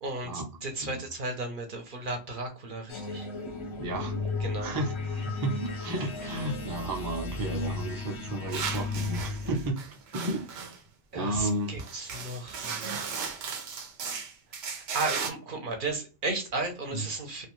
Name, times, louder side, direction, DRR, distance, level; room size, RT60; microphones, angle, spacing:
voice 1, 0.0-3.3 4.4-4.7 11.1-13.0 14.5-17.5, right 2 dB, 55° right, 0.8 m, -34 dB
sound 1, 2.9-9.7, left 3 dB, 40° left, 0.5 m, -35 dB
voice 2, 3.8-4.2 4.6-10.5 11.1-11.7 16.9-17.0, right 1 dB, 25° right, 0.5 m, -33 dB
sound 2, 8.5-10.8 11.5-11.6 11.8-15.3, right 6 dB, 90° right, 0.9 m, -36 dB
2.5 x 2.3 x 3.0 m
omnidirectional pair, 1.1 m